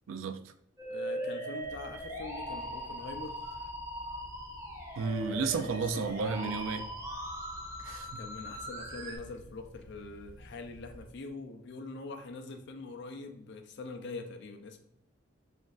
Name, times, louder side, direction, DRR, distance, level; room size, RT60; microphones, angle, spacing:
voice 1, 0.1-0.5 4.9-6.8 7.8-8.2, right 5 dB, 80° right, 0.4 m, -33 dB
Musical instrument, 0.8-9.2, equal, 15° right, 0.7 m, -40 dB
voice 2, 0.9-3.4 5.3-6.7 8.2-14.8, left 3 dB, 60° left, 0.5 m, -43 dB
Telephone, 1.6-11.3, equal, 20° left, 1.4 m, -52 dB
6.0 x 2.5 x 2.4 m
head